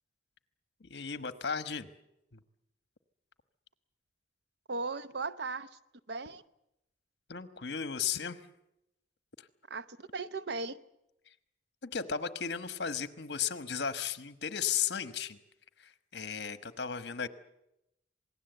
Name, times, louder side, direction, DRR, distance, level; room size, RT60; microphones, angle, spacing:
voice 1, 0.8-1.9 2.3-2.4 7.3-8.5 9.4-9.5 11.8-15.4 15.8-17.3, left 7 dB, 65° left, 1.2 m, -35 dB
voice 2, 4.7-5.7 6.1-6.4 9.7-10.8, right 3 dB, 60° right, 0.8 m, -37 dB
27.0 x 19.0 x 8.0 m
head